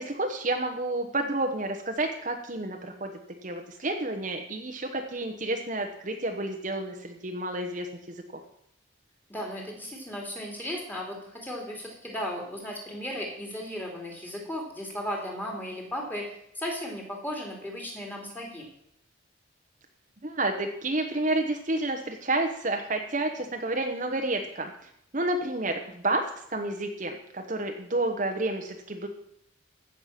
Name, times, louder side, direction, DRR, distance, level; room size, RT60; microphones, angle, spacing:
voice 1, 0.0-3.1 3.4-8.1 20.2-26.2 26.5-29.1, right 2 dB, 40° right, 4 dB, 1.0 m, -30 dB
voice 2, 9.3-18.6, equal, 10° left, -1 dB, 2.8 m, -36 dB
16.0 x 6.7 x 5.8 m, 0.72 s
head